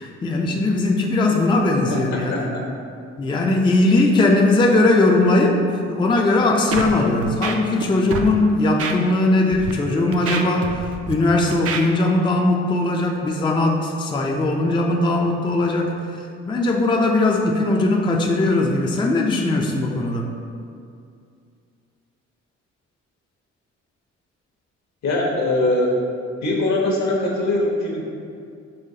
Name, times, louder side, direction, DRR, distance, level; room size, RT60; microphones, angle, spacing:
voice 1, 0.0-2.5 3.2-10.8 11.1-20.3, left 2 dB, 15° left, 0 dB, 0.4 m, -19 dB
voice 2, 1.9-2.4 25.0-25.9 26.4-28.0, left 2 dB, 65° left, -2 dB, 1.1 m, -21 dB
Scratching (performance technique), 6.7-6.9 7.2-7.8 8.1-8.3 8.8-8.9 9.5-9.7 10.1-11.1 11.5-11.8, right 5 dB, 50° right, 0.5 m, -26 dB
5.6 x 3.0 x 2.7 m, 2.4 s
supercardioid pair, 65°, 30 cm